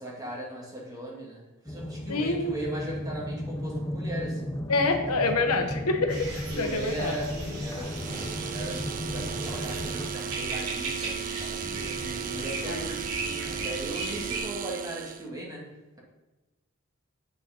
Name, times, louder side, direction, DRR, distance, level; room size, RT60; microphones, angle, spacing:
voice 1, 0.0-4.4 6.5-11.6 12.1-15.6, right 1 dB, 15° right, -4 dB, 2.5 m, -38 dB
sound 1, 1.7-10.1, left 1 dB, 15° left, 0.5 m, -35 dB
voice 2, 2.1-2.5 4.7-7.2 12.3-12.9, left 3 dB, 80° left, 6 dB, 1.1 m, -27 dB
sound 2, 6.1-14.4, right 2 dB, 80° right, 3.1 m, -36 dB
sound 3, 7.8-15.3, right 9 dB, 40° right, 0.4 m, -36 dB
8.5 x 6.4 x 5.4 m, 1.1 s
head